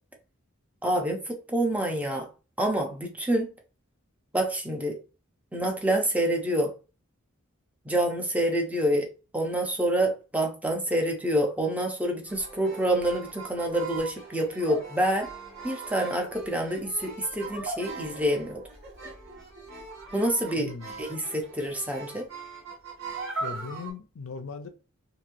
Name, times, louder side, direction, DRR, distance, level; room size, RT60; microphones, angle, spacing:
voice 1, 0.8-2.3 2.6-3.5 4.3-5.0 5.5-6.7 7.8-9.1 9.3-15.3 15.6-18.6 20.1-20.7 21.0-22.3, right 1 dB, 5° right, 0.6 m, -27 dB
sound 1, 12.3-23.9, right 3 dB, 60° right, 1.1 m, -40 dB
voice 2, 20.6-21.0 23.4-24.7, left 4 dB, 75° left, 0.5 m, -38 dB
3.0 x 2.7 x 2.6 m
head